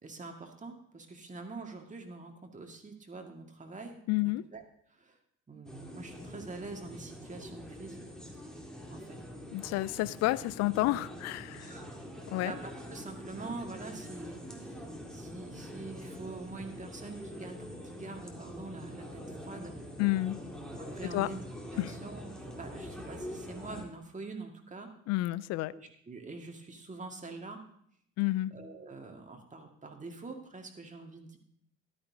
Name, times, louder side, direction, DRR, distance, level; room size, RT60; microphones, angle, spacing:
voice 1, 0.0-4.6 4.9-5.2 5.5-8.0 8.9-9.2 11.5-11.8 12.1-19.7 20.8-21.4 21.7-24.9 25.7-27.6 28.5-31.4, right 3 dB, 20° right, 1.9 m, -45 dB
voice 2, 4.1-4.5 9.5-11.7 12.3-12.6 20.0-20.4 21.0-21.3 21.8-21.9 25.1-25.8 28.2-28.5, left 18 dB, 45° left, 0.4 m, -30 dB
sound 1, 5.7-23.8, equal, ahead, 2.0 m, -45 dB
13.5 x 12.0 x 2.7 m
figure-of-eight pair, 50°, 38 cm